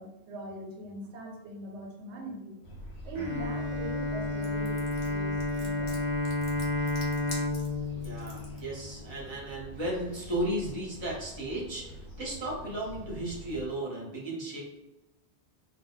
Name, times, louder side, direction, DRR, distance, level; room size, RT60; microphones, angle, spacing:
voice 1, 0.0-2.6 3.0-6.0, right 2 dB, 85° right, 1 dB, 0.9 m, -41 dB
sound 1, 2.6-13.7, equal, 65° left, 1.0 m, -45 dB
Bowed string instrument, 3.2-9.3, left 2 dB, 45° right, 0.4 m, -32 dB
sound 2, 4.4-8.6, left 2 dB, 40° left, 0.6 m, -46 dB
voice 2, 7.9-14.6, right 1 dB, 25° right, -4 dB, 0.8 m, -35 dB
2.2 x 2.1 x 3.7 m, 1.0 s
omnidirectional pair, 1.2 m